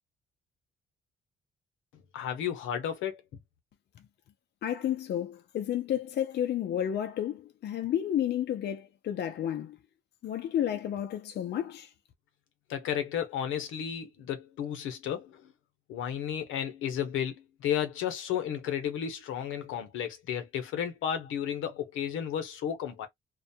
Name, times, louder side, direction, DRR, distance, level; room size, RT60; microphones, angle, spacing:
voice 1, 2.1-3.2 12.7-15.4 15.9-23.1, left 9 dB, 85° left, 0.8 m, -33 dB
voice 2, 4.6-9.8 10.2-11.9, left 10 dB, 55° left, 0.5 m, -31 dB
2.4 x 2.2 x 2.6 m
cardioid pair, 90°, 20 cm